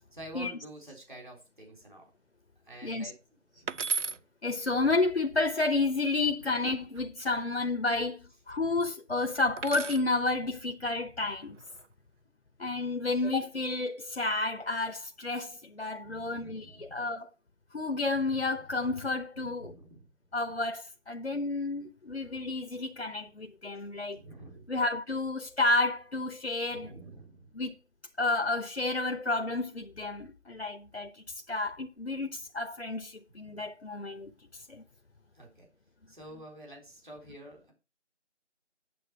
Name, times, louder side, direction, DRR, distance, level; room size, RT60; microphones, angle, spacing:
voice 1, 0.1-2.1 2.7-3.1 3.6-4.2 16.0-17.1 19.4-20.1 24.1-24.7 26.7-27.5 33.4-33.6 35.3-35.7 36.1-37.7, right 2 dB, 40° right, 3.7 m, -48 dB
sound 1, 3.7-4.2 6.4-7.0 9.6-10.1 11.4-11.9, right 5 dB, 75° right, 0.6 m, -34 dB
voice 2, 4.4-11.6 12.6-17.3 17.7-19.7 20.3-24.2 24.7-26.9 27.5-27.8 28.2-34.8, left 3 dB, 60° left, 0.9 m, -31 dB
8.8 x 7.6 x 4.5 m
figure-of-eight pair, 175°, 36 cm